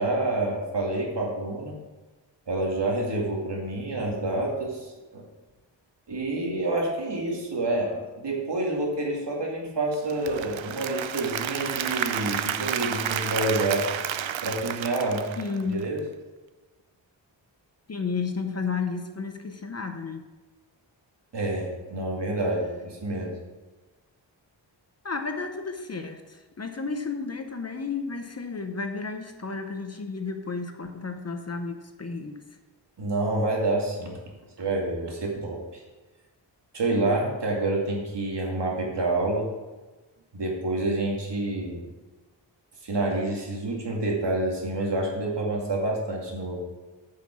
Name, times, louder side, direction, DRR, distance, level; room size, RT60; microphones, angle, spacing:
voice 1, 0.0-1.8 2.5-5.2 6.1-13.8 14.4-15.3 15.7-16.0 21.3-23.3 33.0-34.2 34.6-35.8 36.7-39.5 40.3-41.8 42.8-46.6, right 2 dB, 65° right, -1 dB, 2.3 m, -28 dB
Applause / Crowd, 9.9-16.0, right 10 dB, 85° right, 0.6 m, -31 dB
voice 2, 15.4-15.8 17.9-20.2 25.0-32.4 36.9-37.2, left 4 dB, 35° left, 6 dB, 0.7 m, -32 dB
8.9 x 5.8 x 6.1 m, 1.2 s
wide cardioid pair, 135°, 45 cm